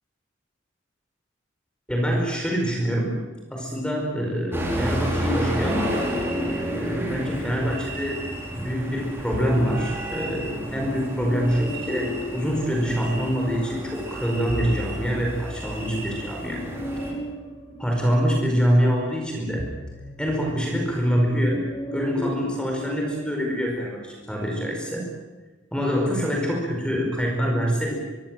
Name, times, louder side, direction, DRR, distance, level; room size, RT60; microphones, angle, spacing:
voice 1, 1.9-3.2 3.5-6.0 6.7-8.2 8.5-16.6 17.8-19.7 20.2-21.6 21.9-25.1 25.7-27.9, equal, 5° left, 0 dB, 4.9 m, -25 dB
sound 1, 4.5-17.1, equal, 10° right, 5.1 m, -31 dB
sound 2, 4.7-8.2 9.1-13.6 14.0-23.3, equal, 35° left, 5.6 m, -37 dB
24.5 x 22.5 x 7.6 m, 1.2 s
head